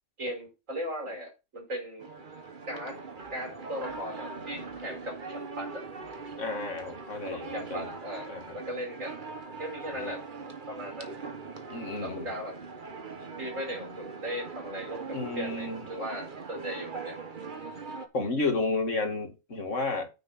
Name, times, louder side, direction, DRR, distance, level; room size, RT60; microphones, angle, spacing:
voice 1, 0.2-2.1 2.7-3.0 3.3-5.8 7.2-9.2 9.6-10.2 10.7-11.2 11.8-12.6 13.4-17.2, equal, 85° right, 5.3 m, -38 dB
sound 1, 2.0-18.1, right 4 dB, 40° right, 1.3 m, -41 dB
voice 2, 6.4-7.9 8.3-8.4 9.9-10.1 11.7-12.3 15.1-15.9 18.1-20.1, left 3 dB, 70° left, 2.5 m, -32 dB
9.5 x 5.9 x 4.2 m
omnidirectional pair, 1.3 m